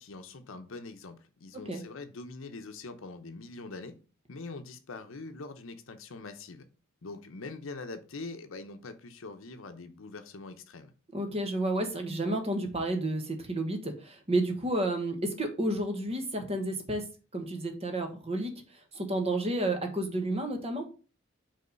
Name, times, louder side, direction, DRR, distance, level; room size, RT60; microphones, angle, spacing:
voice 1, 0.0-4.0 4.3-6.6 7.0-10.9, left 3 dB, 75° left, 8 dB, 0.8 m, -43 dB
voice 2, 11.1-17.0 17.3-18.5 18.9-20.9, right 1 dB, 30° right, 5 dB, 1.2 m, -31 dB
5.4 x 3.5 x 5.2 m, 0.35 s
head